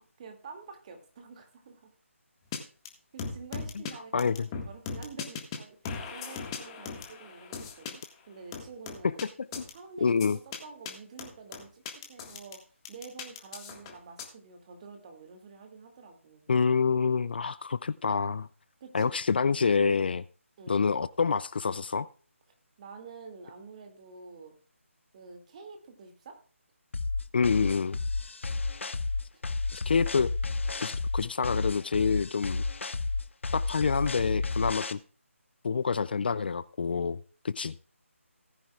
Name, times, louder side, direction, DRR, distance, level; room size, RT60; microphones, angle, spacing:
voice 1, 0.2-1.9 3.1-5.8 6.1-9.2 9.7-12.6 12.9-16.4 18.8-19.2 20.6-20.8 22.8-24.5 25.1-26.4 29.3-29.4, right 4 dB, 30° right, 4 dB, 2.3 m, -48 dB
sound 1, 2.5-2.6 2.9-3.0 3.2-3.9 4.2-5.6 5.9-8.0 8.5-9.2 9.5-9.7 10.2-10.6 10.9-11.0 11.2-12.5 12.9-14.2, left 5 dB, 20° left, 1.7 m, -38 dB
voice 2, 4.1-4.5 9.0-9.1 9.6-9.7 10.0-10.4 16.5-18.5 18.9-20.2 20.7-22.1 27.3-28.0 29.7-30.3 30.8-32.6 33.5-35.0 35.6-37.2 37.4-37.7, left 5 dB, 45° left, 18 dB, 0.4 m, -27 dB
sound 2, 26.9-34.9, left 3 dB, 60° left, 0.9 m, -31 dB
18.5 x 10.0 x 2.4 m, 0.39 s
figure-of-eight pair, 155°, 7 cm